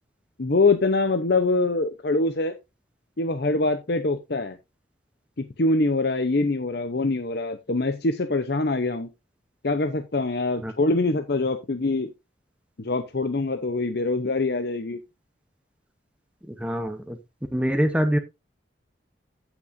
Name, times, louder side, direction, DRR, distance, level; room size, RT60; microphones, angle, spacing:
voice 1, 0.4-2.5 3.2-4.6 5.4-9.1 9.6-12.1 12.8-15.0, left 2 dB, 55° left, 0.7 m, -24 dB
voice 2, 16.5-17.2 17.5-18.2, equal, 5° right, 0.7 m, -24 dB
14.5 x 6.0 x 2.6 m
head